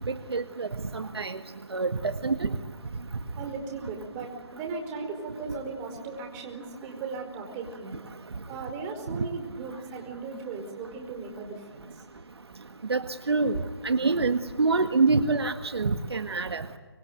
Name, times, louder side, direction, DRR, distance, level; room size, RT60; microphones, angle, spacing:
voice 1, 0.1-1.4 1.7-2.6 9.1-9.2 12.9-16.6, right 4 dB, 70° right, 8 dB, 1.7 m, -26 dB
voice 2, 3.4-8.0 8.5-12.0, right 4 dB, 20° right, 3 dB, 4.9 m, -37 dB
25.5 x 22.5 x 9.3 m, 1.3 s
figure-of-eight pair, 150°, 14 cm